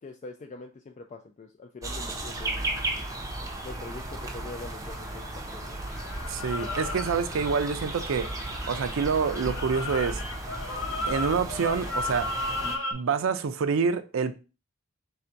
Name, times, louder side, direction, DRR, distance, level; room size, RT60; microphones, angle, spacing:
voice 1, 0.0-2.8 3.6-5.8, left 3 dB, 35° left, 0.3 m, -44 dB
sound 1, 1.8-12.8, right 2 dB, 15° right, 0.6 m, -35 dB
sound 2, 2.4-5.5 5.9-12.9, left 2 dB, 75° left, 0.7 m, -36 dB
voice 2, 6.3-8.3 8.7-10.2 11.0-12.3 12.9-14.3, right 5 dB, 70° right, 0.4 m, -27 dB
3.4 x 2.6 x 4.4 m
head